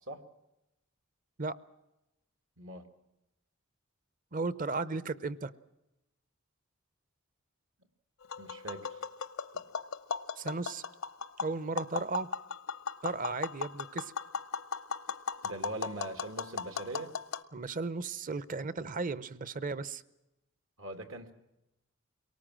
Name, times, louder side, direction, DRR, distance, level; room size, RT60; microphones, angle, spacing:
voice 1, 4.3-5.5 10.4-10.8 11.4-12.3 13.0-14.1 17.5-20.0, right 3 dB, 40° right, 17 dB, 0.7 m, -35 dB
Tap, 8.2-17.4, left 5 dB, 80° left, 0.8 m, -38 dB
voice 2, 8.4-9.0 9.5-9.6 15.4-17.1 20.8-21.3, right 2 dB, 80° right, 8 dB, 2.1 m, -41 dB
23.5 x 19.0 x 7.6 m, 0.92 s
head